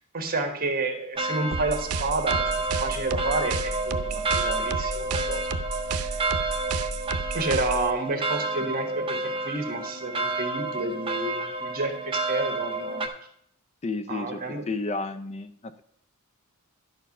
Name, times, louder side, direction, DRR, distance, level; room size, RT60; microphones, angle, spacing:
voice 1, 0.1-2.5 2.8-5.4 5.9-6.2 7.3-13.1 14.1-14.6, right 2 dB, 40° right, 5 dB, 1.5 m, -30 dB
sound 1, 1.1-13.1, right 2 dB, 25° right, 0.9 m, -30 dB
sound 2, 1.5-7.9, right 4 dB, 85° right, 0.6 m, -32 dB
voice 2, 13.8-15.8, left 3 dB, 30° left, 11 dB, 0.4 m, -32 dB
11.0 x 4.7 x 5.9 m, 0.70 s
head